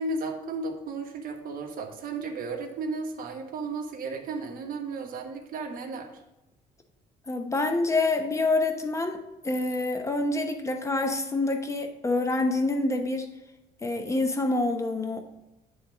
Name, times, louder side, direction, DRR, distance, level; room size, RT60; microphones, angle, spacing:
voice 1, 0.0-6.2, right 3 dB, 55° right, 3 dB, 1.3 m, -34 dB
voice 2, 7.3-9.2 9.4-13.3 13.8-15.2, left 2 dB, 15° left, 5 dB, 1.0 m, -26 dB
9.7 x 3.6 x 5.1 m, 0.96 s
cardioid pair, 110°, 17 cm